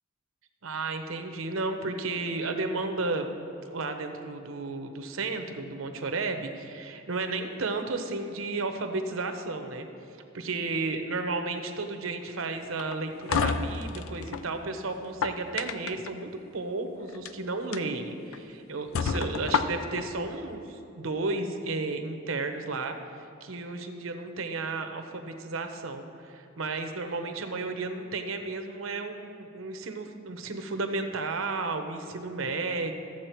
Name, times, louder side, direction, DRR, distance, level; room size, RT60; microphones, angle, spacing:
voice 1, 0.6-3.3 3.7-9.9 10.3-23.0 23.4-32.9, right 3 dB, 70° right, 6 dB, 0.9 m, -33 dB
sound 1, 12.8-14.5 15.0-16.1 17.1-17.3 17.7-17.8 18.3-18.4 18.9-20.1, left 5 dB, 75° left, 0.5 m, -29 dB
14.0 x 7.5 x 4.5 m, 2.7 s
head